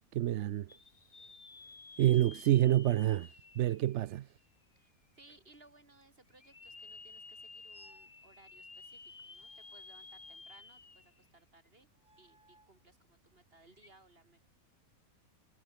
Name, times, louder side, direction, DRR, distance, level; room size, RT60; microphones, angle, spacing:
voice 1, 0.1-0.7 2.0-3.3 3.6-4.3, right 13 dB, 65° right, 0.7 m, -27 dB
sound 1, 0.7-4.6 5.2-5.3 6.3-11.3 11.7-11.8 13.7-13.9, left 3 dB, 35° left, 2.1 m, -53 dB
voice 2, 4.8-11.9 12.2-14.4, right 2 dB, 40° right, 4.1 m, -63 dB
sound 2, 7.7-8.2 9.4-10.6 12.0-12.8, right 2 dB, 20° right, 2.5 m, -65 dB
omnidirectional pair, 1.5 m